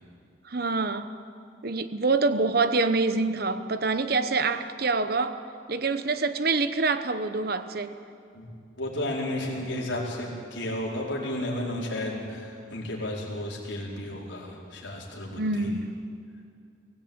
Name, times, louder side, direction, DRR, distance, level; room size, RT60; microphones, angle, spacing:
voice 1, 0.4-1.1 1.6-5.4 5.7-8.0 15.4-15.9, right 3 dB, 50° right, 11 dB, 1.0 m, -26 dB
voice 2, 8.8-15.7, left 1 dB, 70° left, -3 dB, 4.6 m, -33 dB
23.0 x 17.0 x 8.9 m, 2.4 s
head